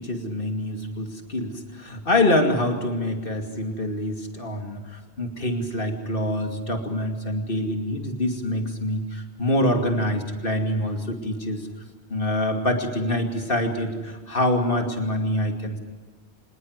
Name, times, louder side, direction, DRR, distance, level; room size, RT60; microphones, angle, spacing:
voice 1, 0.0-11.7 12.1-15.8, left 1 dB, 55° left, 4 dB, 2.8 m, -25 dB
25.0 x 19.5 x 8.1 m, 1.4 s
omnidirectional pair, 1.1 m